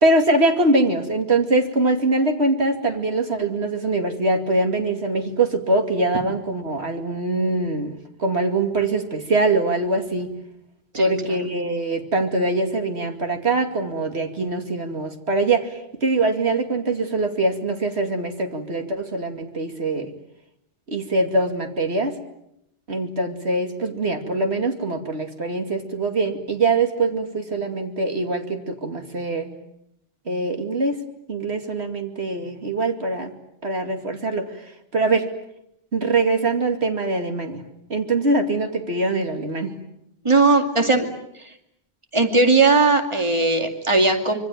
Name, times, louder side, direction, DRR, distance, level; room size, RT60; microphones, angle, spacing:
voice 1, 0.0-10.3 10.9-20.1 20.9-22.2 22.9-29.6 30.3-31.0 31.3-33.3 33.6-34.6 34.9-35.3 35.9-37.6 37.9-39.7, right 2 dB, 80° right, 5 dB, 2.8 m, -23 dB
voice 2, 40.2-41.1 42.1-44.4, right 3 dB, 30° right, 5 dB, 2.5 m, -18 dB
26.0 x 23.5 x 9.0 m, 0.80 s
omnidirectional pair, 1.1 m